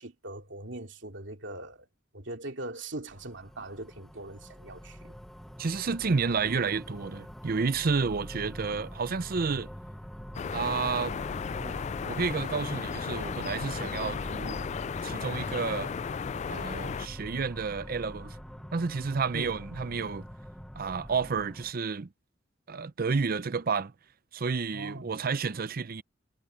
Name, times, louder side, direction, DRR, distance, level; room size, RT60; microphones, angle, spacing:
voice 1, 0.0-1.9 2.1-5.2 19.3-19.5 24.7-25.1, right 1 dB, 65° right, 2.9 m, -41 dB
sound 1, 3.1-21.7, equal, ahead, 1.1 m, -44 dB
voice 2, 5.6-9.7 10.5-11.2 11.6-11.8 12.1-14.6 15.0-15.9 16.5-18.4 18.7-20.3 20.8-22.1 22.7-23.9 24.3-26.0, right 5 dB, 50° right, 0.6 m, -30 dB
sound 2, 10.3-17.1, left 6 dB, 35° left, 0.3 m, -35 dB
sound 3, 17.7-19.8, equal, 80° left, 3.8 m, -54 dB
head